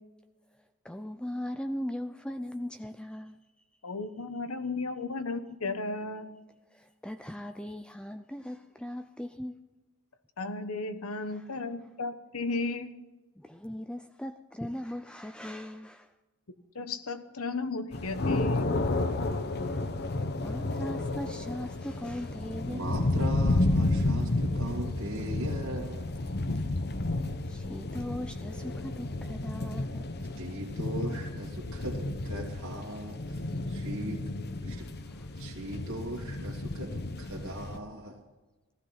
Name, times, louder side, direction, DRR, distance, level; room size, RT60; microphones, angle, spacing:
voice 1, 0.8-3.4 6.7-9.6 11.3-11.4 13.4-16.1 19.6-19.8 20.4-23.0 27.5-30.1 34.8-35.3, left 1 dB, 5° left, 8 dB, 0.5 m, -39 dB
voice 2, 3.8-6.4 10.4-12.9 16.7-18.7, left 3 dB, 70° left, 10 dB, 1.2 m, -34 dB
sound 1, 17.9-37.8, left 2 dB, 50° left, 1.0 m, -31 dB
voice 3, 22.7-26.1 30.4-34.2 34.6-34.9 35.4-38.2, right 1 dB, 65° right, -3 dB, 2.5 m, -39 dB
15.5 x 15.0 x 5.8 m, 1.2 s
head